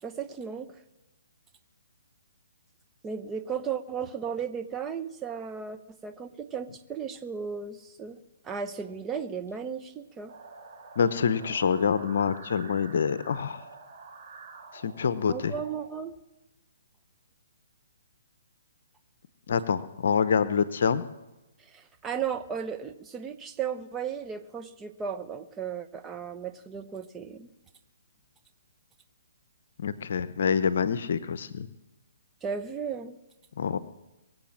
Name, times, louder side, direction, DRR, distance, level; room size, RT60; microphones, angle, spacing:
voice 1, 0.0-0.8 3.0-8.2 8.4-10.3 15.3-16.2 21.6-27.5 32.4-33.2, right 7 dB, 15° right, 8 dB, 0.9 m, -35 dB
sound 1, 10.3-15.9, right 4 dB, 40° right, 3.5 m, -47 dB
voice 2, 11.0-13.6 14.7-15.5 19.5-21.0 29.8-31.7 33.6-33.8, left 6 dB, 60° left, 14 dB, 0.8 m, -26 dB
23.0 x 7.9 x 7.4 m, 1.0 s
hypercardioid pair, 140°, 0 cm